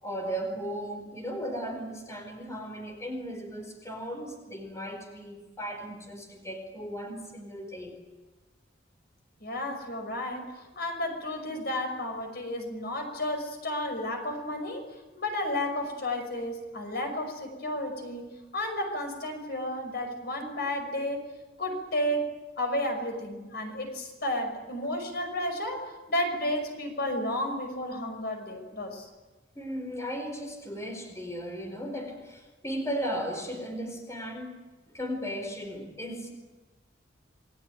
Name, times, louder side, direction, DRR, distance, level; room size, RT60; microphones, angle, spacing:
voice 1, 0.0-7.9 29.5-34.6 34.9-36.3, equal, 15° left, 5 dB, 4.6 m, -36 dB
voice 2, 9.4-14.8 15.2-21.2 21.6-22.3 22.6-25.8 26.1-29.1, left 1 dB, 60° left, 5 dB, 5.9 m, -32 dB
29.0 x 21.5 x 9.2 m, 1.2 s
head